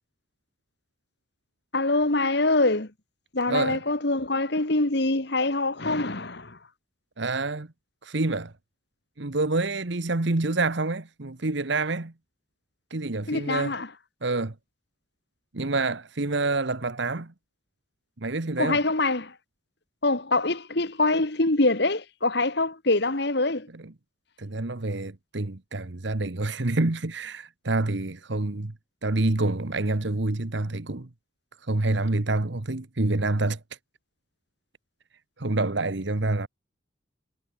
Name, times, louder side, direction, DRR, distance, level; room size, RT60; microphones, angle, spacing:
voice 1, 1.7-2.9 3.3-6.6 13.3-13.9 18.6-19.3 20.0-23.7, left 2 dB, 55° left, 1.8 m, -24 dB
voice 2, 3.5-3.8 7.2-7.7 8.0-8.5 9.2-12.1 12.9-13.8 14.2-14.5 15.5-17.3 18.2-18.8 24.4-28.7 29.0-31.1 31.7-33.6 35.4-36.5, right 2 dB, 60° right, 1.2 m, -27 dB
head